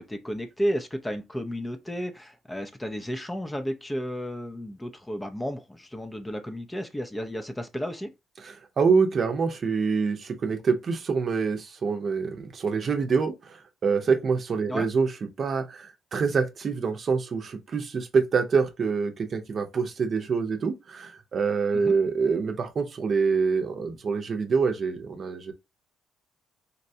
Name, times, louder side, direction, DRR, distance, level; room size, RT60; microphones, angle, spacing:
voice 1, 0.0-8.1 14.7-14.9 21.7-22.0, equal, 10° left, 0.5 m, -32 dB
voice 2, 8.4-15.1 15.4-25.5, right 5 dB, 45° right, 0.7 m, -26 dB
4.0 x 2.2 x 2.7 m
cardioid pair, 80°, 0 cm